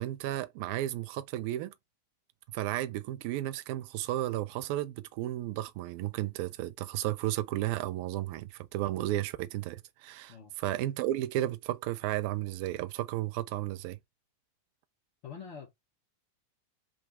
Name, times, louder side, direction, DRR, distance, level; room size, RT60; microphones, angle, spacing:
voice 1, 0.0-1.7 2.5-14.0, right 14 dB, 45° right, 0.5 m, -33 dB
voice 2, 15.2-15.7, left 6 dB, 40° left, 1.1 m, -45 dB
3.7 x 2.3 x 4.2 m
figure-of-eight pair, 90°, 0 cm